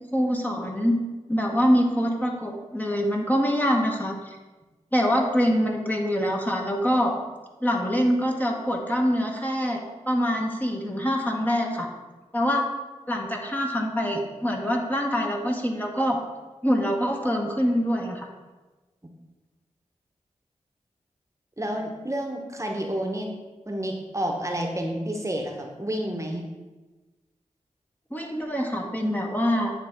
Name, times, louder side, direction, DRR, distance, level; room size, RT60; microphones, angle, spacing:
voice 1, 0.1-1.0 1.3-4.4 4.9-7.2 7.6-11.9 12.3-12.6 13.1-16.2 16.6-18.3 28.1-29.7, equal, 15° left, 0 dB, 1.1 m, -24 dB
voice 2, 21.6-23.3 23.7-26.5, right 1 dB, 20° right, 2 dB, 1.1 m, -30 dB
8.9 x 3.3 x 4.4 m, 1.2 s
cardioid pair, 40°, 13 cm